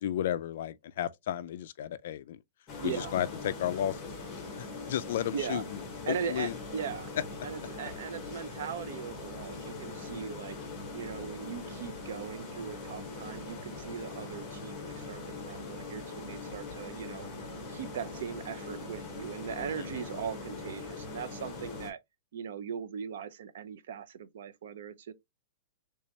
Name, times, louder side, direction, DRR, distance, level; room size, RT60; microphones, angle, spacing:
voice 1, 0.0-2.4 2.8-5.8 6.1-6.5 19.8-20.0, left 11 dB, 50° left, 0.3 m, -33 dB
sound 1, 2.7-21.9, left 3 dB, 15° left, 1.0 m, -42 dB
voice 2, 2.8-3.1 5.3-5.6 6.1-7.1 7.4-10.6 10.9-17.3 17.7-22.0 22.3-25.1, right 8 dB, 60° right, 0.5 m, -39 dB
3.3 x 3.2 x 2.8 m
supercardioid pair, 175°, 0 cm